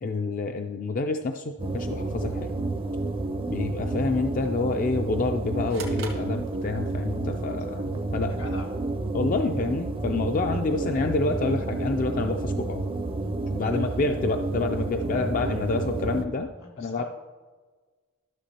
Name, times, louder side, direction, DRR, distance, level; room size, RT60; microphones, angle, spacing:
voice 1, 0.0-2.5 3.5-8.3 9.1-12.8 13.5-16.5 16.8-17.0, left 3 dB, 40° left, 5 dB, 0.3 m, -28 dB
sound 1, 1.6-16.3, right 2 dB, 25° right, 0.5 m, -30 dB
sound 2, 5.7-7.1, right 4 dB, 90° right, 1.9 m, -42 dB
voice 2, 8.2-8.7 13.7-13.9 16.6-17.0, left 2 dB, 80° left, 1 dB, 2.0 m, -42 dB
13.0 x 6.6 x 2.9 m, 1.4 s
head